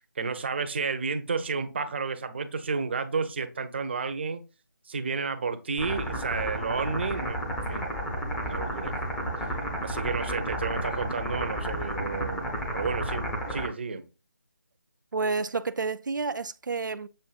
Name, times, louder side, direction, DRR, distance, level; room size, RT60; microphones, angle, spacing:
voice 1, 0.2-4.4 4.9-7.9 8.4-9.0 9.4-9.5 9.8-14.1, right 4 dB, 35° right, 0.6 m, -31 dB
sound 1, 5.8-13.7, equal, 5° left, 0.6 m, -32 dB
voice 2, 15.1-17.1, right 4 dB, 80° right, 0.4 m, -30 dB
7.6 x 2.6 x 2.4 m
figure-of-eight pair, 160°, 10 cm